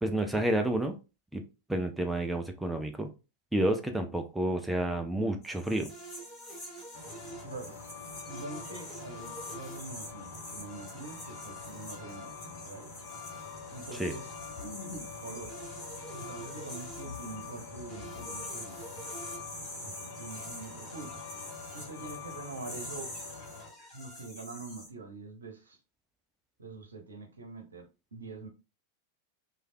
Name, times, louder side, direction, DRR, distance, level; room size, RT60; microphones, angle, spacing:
voice 1, 0.0-0.9 1.3-1.4 1.7-3.1 3.5-5.9 14.0-14.1, right 1 dB, 5° right, 5 dB, 0.4 m, -30 dB
sound 1, 5.4-24.9, left 1 dB, 30° left, 1.5 m, -47 dB
sound 2, 5.9-7.5 8.3-9.8 10.7-12.3 13.1-14.7 15.5-17.1 17.9-19.4 20.3-21.9 22.7-24.3, right 2 dB, 15° left, 1.0 m, -50 dB
Truck, 6.9-23.7, left 5 dB, 60° left, 1.0 m, -45 dB
voice 2, 7.4-7.8 8.3-12.9 13.7-14.3 14.6-15.6 16.1-18.8 19.8-23.1 23.9-25.8 26.6-28.5, right 3 dB, 75° right, 4 dB, 0.7 m, -45 dB
3.2 x 2.3 x 2.6 m, 0.30 s
figure-of-eight pair, 90°, 0 cm